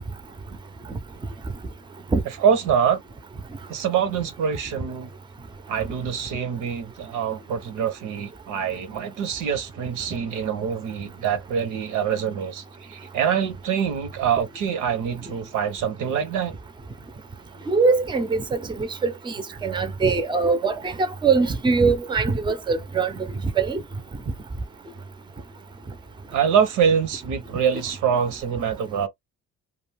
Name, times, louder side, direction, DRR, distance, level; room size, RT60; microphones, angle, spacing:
voice 1, 2.4-3.0 3.7-5.1 5.7-16.5 26.3-29.1, right 7 dB, 85° right, 0.8 m, -25 dB
voice 2, 17.7-23.1 23.6-23.8, right 4 dB, 15° right, 0.5 m, -22 dB
2.4 x 2.2 x 3.3 m
cardioid pair, 90°, 30 cm